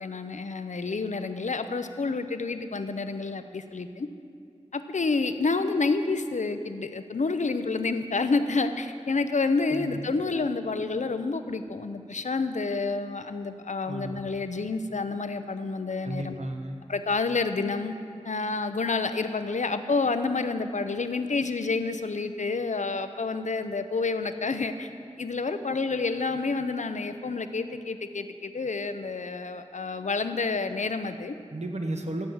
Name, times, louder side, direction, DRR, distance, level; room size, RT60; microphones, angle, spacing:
voice 1, 0.0-4.1 4.7-16.4 16.9-17.9 18.2-24.9 25.2-31.3, left 3 dB, 85° left, 9 dB, 0.6 m, -29 dB
voice 2, 9.7-10.1 13.9-14.2 16.0-16.8 31.5-32.3, right 1 dB, 65° right, 4 dB, 1.0 m, -34 dB
15.0 x 6.0 x 7.9 m, 2.3 s
wide cardioid pair, 55°, 12 cm